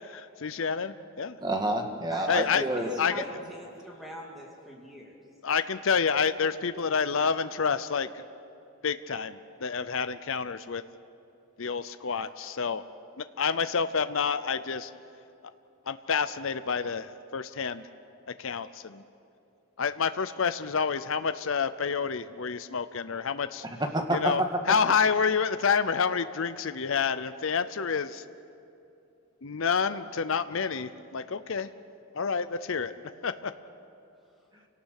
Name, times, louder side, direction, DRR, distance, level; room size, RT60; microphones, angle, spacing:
voice 1, 0.1-1.4 2.3-2.6 3.0-3.2 5.4-8.2 8.8-10.8 11.6-12.8 13.2-14.9 15.9-17.8 18.3-19.0 19.8-23.6 24.1-24.4 24.7-28.2 29.4-31.7 32.1-32.9 33.2-33.5, left 6 dB, 60° left, 12 dB, 0.6 m, -28 dB
voice 2, 1.4-2.9 23.6-24.5, right 1 dB, 20° right, 4 dB, 1.7 m, -28 dB
voice 3, 2.1-5.2, equal, ahead, -3 dB, 2.5 m, -43 dB
29.0 x 18.0 x 6.6 m, 2.8 s
head